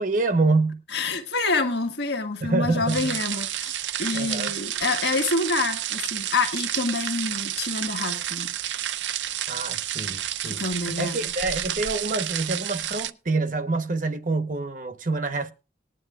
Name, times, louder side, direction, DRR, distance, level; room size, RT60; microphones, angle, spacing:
voice 1, 0.0-0.8 2.4-3.2 4.1-4.5 9.5-15.5, right 3 dB, 45° right, 0.9 m, -26 dB
voice 2, 0.9-8.5 10.4-11.3, left 3 dB, 65° left, 1.5 m, -27 dB
sound 1, 2.9-13.1, right 12 dB, 75° right, 0.5 m, -30 dB
19.5 x 9.9 x 2.4 m
head